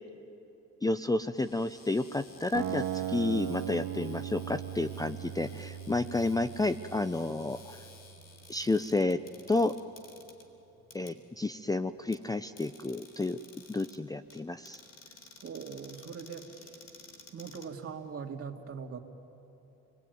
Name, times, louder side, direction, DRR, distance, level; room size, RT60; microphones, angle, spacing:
voice 1, 0.8-7.8 8.5-9.2 9.5-9.7 10.9-13.4 13.7-14.8, left 2 dB, 10° left, 11 dB, 0.5 m, -31 dB
Cupboard open or close, 1.3-18.3, left 3 dB, 55° left, 3.6 m, -55 dB
sound 1, 2.5-8.6, right 11 dB, 80° right, 1.6 m, -38 dB
voice 2, 15.4-16.7 17.3-19.0, right 6 dB, 50° right, 3 dB, 2.4 m, -41 dB
29.0 x 21.0 x 9.4 m, 2.9 s
cardioid pair, 90°, 30 cm